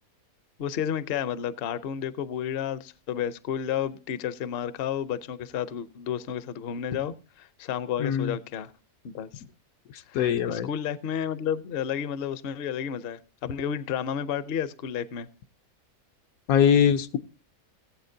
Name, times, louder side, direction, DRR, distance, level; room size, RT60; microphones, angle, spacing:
voice 1, 0.6-8.7 9.0-9.3 10.1-15.3, left 9 dB, 55° left, 14 dB, 0.7 m, -31 dB
voice 2, 8.0-8.3 10.1-10.7 16.5-17.2, left 8 dB, 80° left, 9 dB, 1.1 m, -22 dB
19.0 x 8.3 x 2.7 m, 0.36 s
omnidirectional pair, 1.5 m